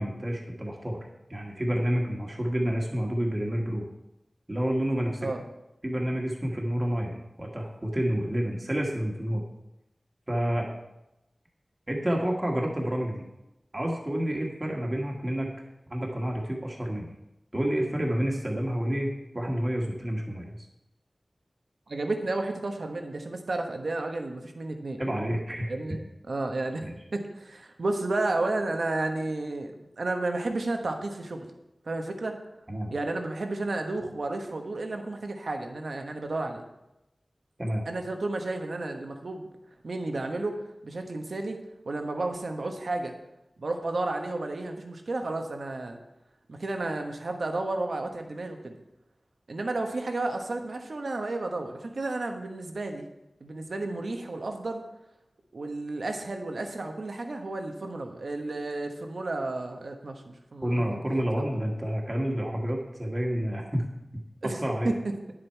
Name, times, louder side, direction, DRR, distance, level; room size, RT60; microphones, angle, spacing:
voice 1, 0.0-3.9 4.5-5.3 5.8-9.4 10.3-10.7 11.9-13.2 13.7-15.5 15.9-17.1 17.5-20.6 25.0-25.7 26.8-26.9 32.7-32.9 37.6-37.8 60.6-63.9 64.4-64.9, equal, 30° right, -1 dB, 1.5 m, -29 dB
voice 2, 21.9-25.0 25.7-26.0 26.3-26.9 27.1-29.7 30.0-31.5 31.8-32.3 32.9-36.6 37.8-39.5 39.8-40.6 40.8-41.6 41.8-43.1 43.6-46.0 46.5-48.8 49.5-53.1 53.4-54.8 55.5-60.8 64.4-65.1, right 2 dB, 80° right, 4 dB, 1.1 m, -32 dB
9.9 x 7.6 x 4.6 m, 0.92 s
wide cardioid pair, 65°, 0 cm